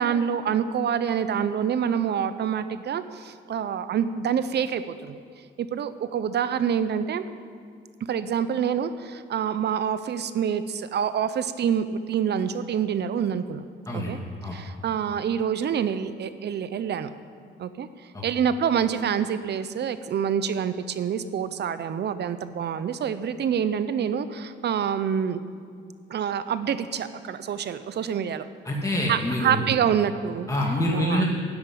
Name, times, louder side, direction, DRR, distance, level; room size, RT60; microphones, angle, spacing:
voice 1, 0.0-5.2 5.6-7.2 8.1-13.6 13.9-14.2 14.5-17.1 17.6-17.9 18.2-25.4 26.1-28.5 29.1-30.5 30.9-31.2, right 8 dB, 60° right, 12 dB, 0.8 m, -26 dB
voice 2, 28.7-29.6 30.5-31.3, left 1 dB, 15° left, -3 dB, 2.2 m, -26 dB
10.5 x 8.1 x 10.0 m, 2.1 s
cardioid pair, 90°, 20 cm